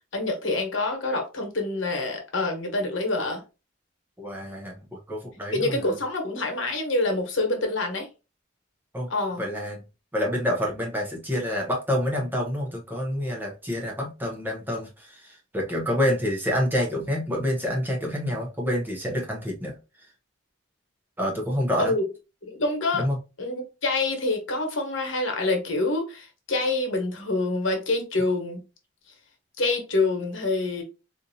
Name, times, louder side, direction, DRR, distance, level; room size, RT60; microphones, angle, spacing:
voice 1, 0.1-3.4 5.5-8.1 9.1-9.4 21.8-22.0 22.4-23.0 23.4-28.6 29.6-30.8, left 2 dB, 80° left, 1.2 m, -26 dB
voice 2, 4.2-4.7 5.1-5.9 8.9-9.1 9.4-9.8 10.1-19.8 21.2-21.9 22.9-23.2, equal, 10° right, 0.6 m, -27 dB
4.0 x 2.6 x 2.7 m
head